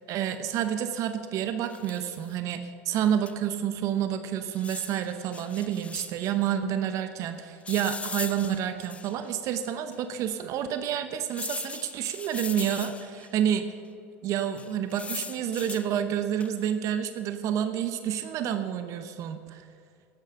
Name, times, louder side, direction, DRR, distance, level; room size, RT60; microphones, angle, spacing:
voice 1, 0.1-13.7 14.2-19.7, right 9 dB, 55° right, 9 dB, 0.9 m, -29 dB
sound 1, 1.6-2.2 3.3-3.4 3.6-3.7 4.5-6.3 7.6-9.3 9.9-10.0 11.3-13.3 14.6-15.9 16.4-16.7, left 4 dB, 20° left, 0.7 m, -39 dB
13.5 x 10.5 x 5.8 m, 2.3 s
hypercardioid pair, 85°, 7 cm